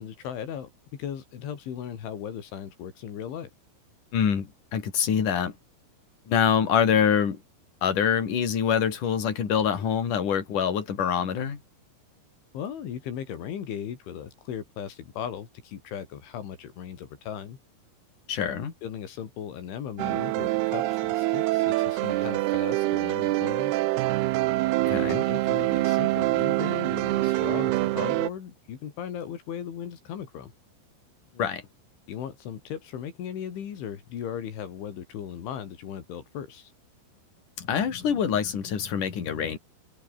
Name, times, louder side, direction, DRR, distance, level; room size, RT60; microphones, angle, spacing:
voice 1, 0.0-3.5 12.5-17.6 18.8-23.7 24.9-30.5 32.1-36.7, left 8 dB, 75° left, 5.6 m, -37 dB
voice 2, 4.1-5.5 6.3-7.4 7.8-11.6 18.3-18.7 24.9-25.3 31.4-31.6 37.6-39.6, left 7 dB, 45° left, 4.6 m, -25 dB
freestyle piano, 20.0-28.3, right 18 dB, 85° right, 2.3 m, -25 dB
omnidirectional pair, 5.6 m